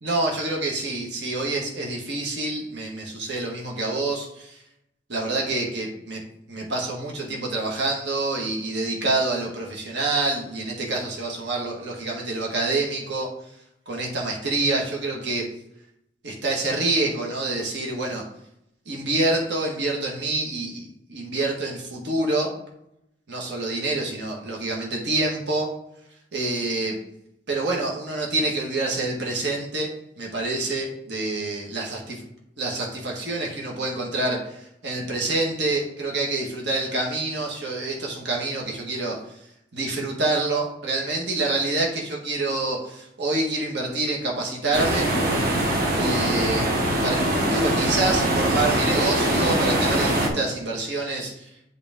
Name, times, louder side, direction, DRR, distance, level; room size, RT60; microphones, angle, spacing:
voice 1, 0.0-4.6 5.1-6.2 6.5-13.3 13.9-15.5 16.2-18.2 18.8-22.5 23.3-25.7 26.3-27.0 27.5-32.2 32.6-39.2 39.7-45.1 46.0-46.7 47.0-51.5, right 2 dB, 75° right, -1 dB, 1.6 m, -27 dB
sound 1, 44.7-50.3, right 1 dB, 55° right, 1.3 m, -22 dB
8.0 x 4.1 x 3.7 m, 0.81 s
head